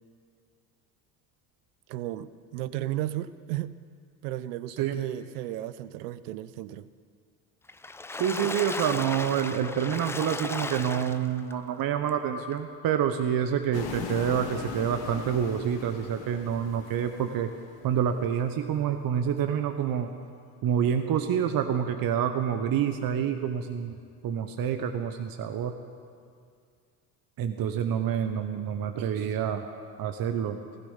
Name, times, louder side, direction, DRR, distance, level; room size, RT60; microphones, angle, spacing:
voice 1, 1.9-3.8 4.2-6.9, right 14 dB, 80° right, 16 dB, 0.7 m, -34 dB
Water / Splash splatter, 7.7-11.5 12.1-12.2 12.5-12.6, left 3 dB, 5° left, 0.3 m, -35 dB
voice 2, 8.1-17.5 17.8-20.1 20.6-24.0 24.2-25.7 27.4-29.7 30.0-30.6, right 8 dB, 45° right, 7 dB, 1.1 m, -27 dB
sound 1, 13.7-18.0, left 6 dB, 65° left, 2.1 m, -39 dB
15.5 x 15.0 x 5.6 m, 2.2 s
hypercardioid pair, 75°, 47 cm